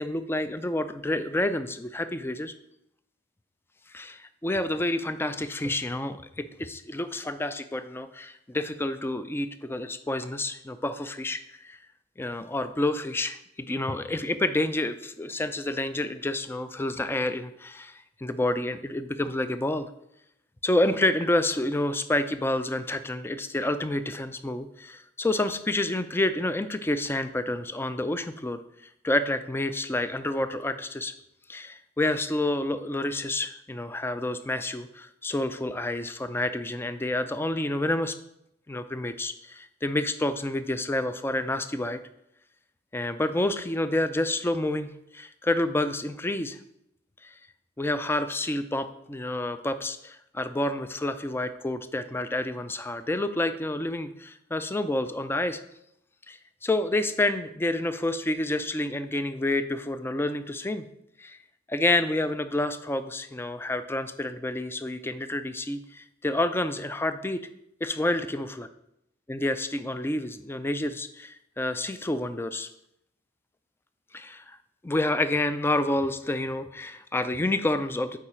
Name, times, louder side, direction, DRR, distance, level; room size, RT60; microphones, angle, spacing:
voice 1, 0.0-2.5 3.9-11.8 12.2-19.9 20.6-28.6 29.0-31.1 31.5-38.2 38.7-42.0 42.9-46.6 47.2-47.3 47.8-55.6 56.3-60.9 61.2-61.4 61.7-67.4 67.8-68.7 69.3-72.7 74.1-74.6 74.8-78.2, left 1 dB, 10° left, 11 dB, 0.4 m, -29 dB
8.4 x 4.9 x 4.4 m, 0.79 s
head